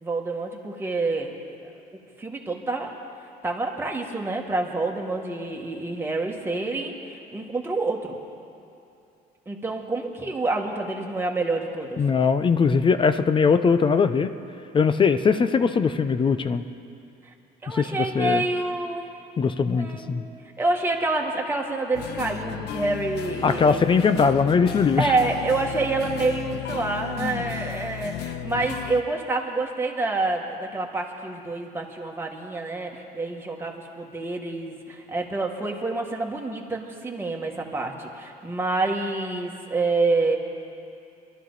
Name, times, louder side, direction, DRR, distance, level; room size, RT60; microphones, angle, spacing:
voice 1, 0.0-1.7 2.2-3.0 3.4-8.2 9.4-12.0 17.2-17.3 17.6-19.1 19.7-20.2 20.6-23.8 25.0-40.4, right 3 dB, 15° right, 0 dB, 1.7 m, -27 dB
voice 2, 12.0-14.3 14.7-16.6 17.7-18.4 19.4-20.2 23.4-25.2 27.2-27.4, left 5 dB, 30° left, 10 dB, 0.6 m, -21 dB
sound 1, 21.9-29.0, left 11 dB, 75° left, 0.6 m, -34 dB
23.0 x 12.5 x 4.1 m, 2.6 s
cardioid pair, 110°, 17 cm